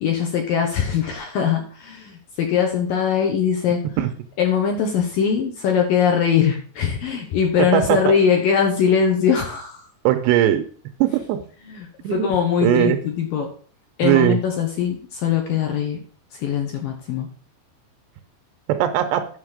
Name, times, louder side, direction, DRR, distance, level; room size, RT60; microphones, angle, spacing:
voice 1, 0.0-3.9 4.4-9.8 11.7-13.5 14.0-16.0 16.3-17.3, left 7 dB, 65° left, 3 dB, 2.3 m, -21 dB
voice 2, 7.6-8.1 10.0-10.6 11.0-11.4 12.0-13.0 14.0-14.4 18.7-19.3, right 12 dB, 80° right, 8 dB, 2.7 m, -19 dB
9.8 x 6.6 x 5.0 m, 0.43 s
omnidirectional pair, 5.2 m